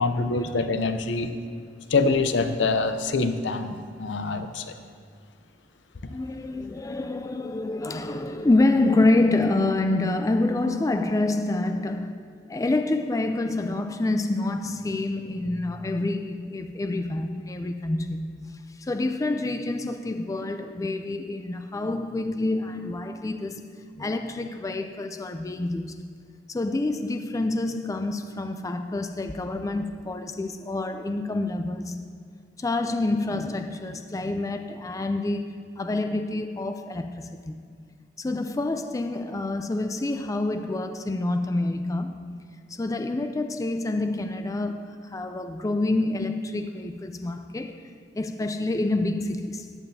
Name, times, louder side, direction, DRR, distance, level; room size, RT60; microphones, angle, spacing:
voice 1, 0.0-1.3 1.9-4.7, left 3 dB, 80° left, 0.6 m, -25 dB
voice 2, 6.1-12.2 12.5-23.7 24.0-26.1 26.5-32.2 32.6-37.6 38.2-42.4 42.8-47.8 48.1-49.7, left 2 dB, 20° left, 0.4 m, -27 dB
14.0 x 9.3 x 2.7 m
head